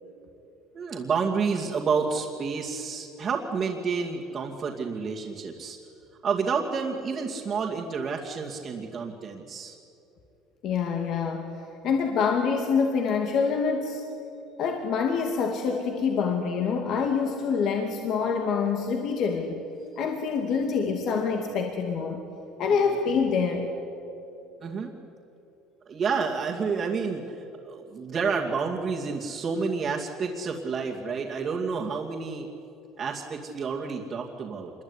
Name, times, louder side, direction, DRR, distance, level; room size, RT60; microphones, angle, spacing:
voice 1, 0.7-5.8 6.2-9.8 22.7-22.8 24.6-24.9 25.9-32.5 33.0-34.7, right 5 dB, 30° right, -3 dB, 2.5 m, -29 dB
voice 2, 10.6-11.5 11.8-14.0 14.6-19.6 20.0-22.2 22.6-23.7, left 5 dB, 50° left, 3 dB, 2.5 m, -26 dB
27.0 x 22.0 x 10.0 m, 2.9 s
cardioid pair, 150°, 0 cm